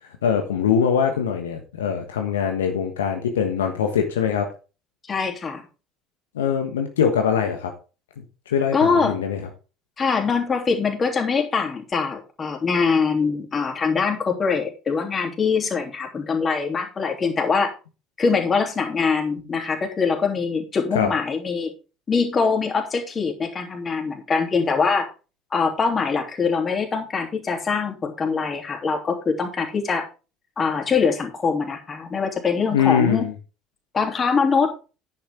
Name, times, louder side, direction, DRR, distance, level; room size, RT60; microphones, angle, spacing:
voice 1, 0.2-4.5 6.3-7.7 8.5-9.5 20.9-21.1 32.7-33.3, left 7 dB, 75° left, 4 dB, 1.3 m, -22 dB
voice 2, 5.1-5.6 8.7-9.2 10.0-17.7 18.2-21.7 22.1-25.1 25.5-30.0 30.6-33.2 33.9-34.7, left 5 dB, 30° left, 3 dB, 3.1 m, -23 dB
10.0 x 8.8 x 3.7 m, 0.32 s
figure-of-eight pair, 60°, 0 cm